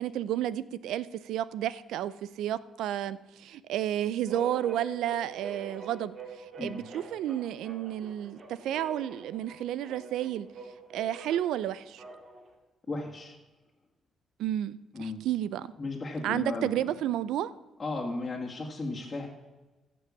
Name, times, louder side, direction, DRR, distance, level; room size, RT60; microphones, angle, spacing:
voice 1, 0.0-6.2 6.6-10.5 10.9-12.0 14.4-15.7 16.2-17.5, right 11 dB, 85° right, 18 dB, 0.5 m, -31 dB
sound 1, 4.3-12.5, right 4 dB, 45° right, 2.7 m, -45 dB
voice 2, 12.9-13.4 14.9-15.2 15.8-16.8 17.8-19.3, left 2 dB, 30° left, -3 dB, 2.3 m, -35 dB
15.0 x 6.2 x 7.3 m, 1.1 s
cardioid pair, 90°, 0 cm